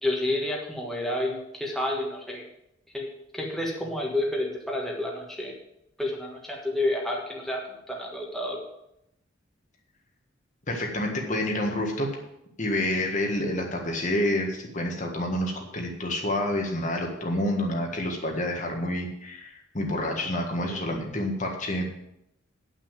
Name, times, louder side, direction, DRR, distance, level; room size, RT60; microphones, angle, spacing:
voice 1, 0.0-2.4 2.9-3.1 3.3-5.5 6.0-7.6 7.9-8.6, left 1 dB, ahead, -2 dB, 1.6 m, -29 dB
voice 2, 10.7-12.1 12.6-21.9, left 1 dB, 40° left, 1 dB, 1.7 m, -28 dB
9.7 x 6.2 x 7.5 m, 0.80 s
head